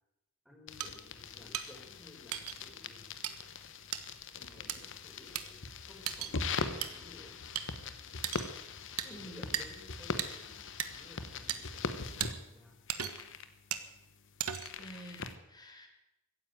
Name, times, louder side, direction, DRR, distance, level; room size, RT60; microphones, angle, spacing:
voice 1, 0.4-3.3 4.3-7.4 9.1-12.8, left 1 dB, ahead, -1 dB, 4.6 m, -56 dB
sound 1, 0.7-15.4, left 4 dB, 60° left, 1.2 m, -42 dB
sound 2, 0.8-0.9 1.5-1.7 2.3-2.6 3.2-3.3 3.9-4.0 4.7-4.8 5.3-5.4 6.1-6.3 6.8-6.9 7.5-7.7 8.2-8.5 9.0-9.1 9.5-9.6 10.2-10.3 10.8-10.9 11.5-11.6 12.2-12.3 12.9-13.3 13.7-13.9 14.4-14.8, right 10 dB, 85° right, 1.3 m, -36 dB
voice 2, 9.0-9.4 14.8-15.9, right 1 dB, 20° left, 3 dB, 2.9 m, -49 dB
15.5 x 10.0 x 9.2 m, 0.91 s
head